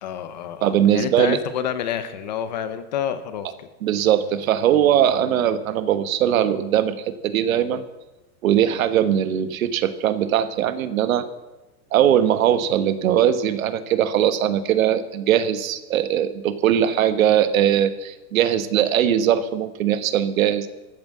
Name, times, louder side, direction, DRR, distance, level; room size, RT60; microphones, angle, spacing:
voice 1, 0.0-3.7 16.8-17.0, left 9 dB, 30° left, 12 dB, 0.6 m, -29 dB
voice 2, 0.6-1.4 3.8-7.8 8.4-11.3 11.9-20.7, right 10 dB, 65° right, 13 dB, 1.2 m, -20 dB
14.0 x 9.2 x 7.4 m, 1.1 s
supercardioid pair, 175°, 45 cm